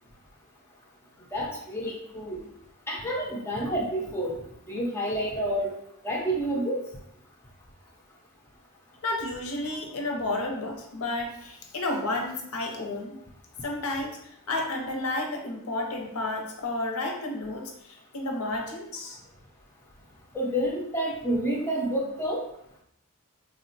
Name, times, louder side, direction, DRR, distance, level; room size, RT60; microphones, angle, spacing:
voice 1, 1.3-2.5 2.9-4.4 4.7-5.8 6.0-6.8 20.3-22.4, right 1 dB, 10° left, -2 dB, 0.3 m, -29 dB
voice 2, 9.0-13.1 13.6-19.2, left 2 dB, 80° left, 2 dB, 0.6 m, -31 dB
3.4 x 2.1 x 2.6 m, 0.75 s
head